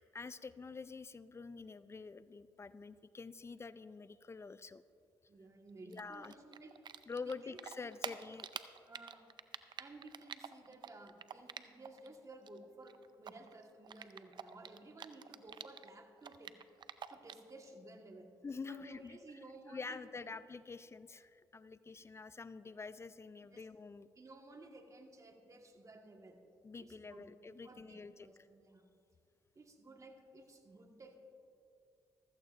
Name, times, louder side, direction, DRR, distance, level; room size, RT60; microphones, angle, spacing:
voice 1, 0.1-4.8 5.9-6.3 7.1-8.8 18.4-19.2 19.7-24.1 26.6-28.3, left 4 dB, 30° left, 15 dB, 0.4 m, -47 dB
voice 2, 5.3-6.7 7.2-8.2 8.9-9.3 9.8-16.6 17.1-18.3 18.7-20.3 21.9-22.0 23.5-23.6 24.2-26.4 26.8-27.3 27.6-28.9 29.5-31.2, right 2 dB, 35° right, 4 dB, 1.5 m, -55 dB
Typing, 5.9-7.3 7.6-12.1 12.3-15.9 16.2-17.5, right 7 dB, 55° right, 0.5 m, -47 dB
15.5 x 13.5 x 2.5 m, 2.5 s
supercardioid pair, 60°, 9 cm